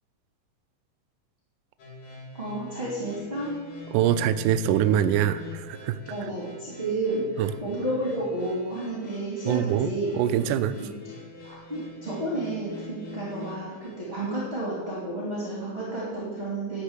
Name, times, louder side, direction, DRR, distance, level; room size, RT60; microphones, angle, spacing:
sound 1, 1.8-14.3, left 2 dB, 65° left, 3.8 m, -44 dB
voice 1, 2.4-3.5 6.1-10.1 11.4-16.8, right 2 dB, 20° right, -6 dB, 2.4 m, -31 dB
voice 2, 3.9-6.0 7.4-7.5 9.5-10.8, right 10 dB, 80° right, 11 dB, 2.0 m, -24 dB
12.0 x 5.8 x 8.1 m, 1.4 s
omnidirectional pair, 3.9 m